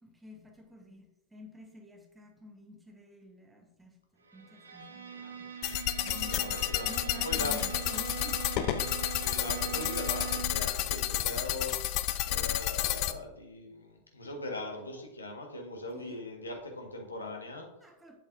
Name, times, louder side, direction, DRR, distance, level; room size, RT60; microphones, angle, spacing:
voice 1, 0.0-5.5 6.0-8.5 15.9-16.2 17.8-18.2, left 2 dB, 10° right, 3 dB, 1.3 m, -50 dB
Bowed string instrument, 4.2-10.7, right 7 dB, 75° right, 1.1 m, -41 dB
sound 1, 5.6-13.1, left 14 dB, 40° left, 0.4 m, -31 dB
voice 2, 6.1-7.6 9.2-12.0 12.2-17.7, left 2 dB, 75° left, 2 dB, 1.4 m, -40 dB
8.1 x 7.5 x 2.6 m, 0.91 s
figure-of-eight pair, 90°, 0 cm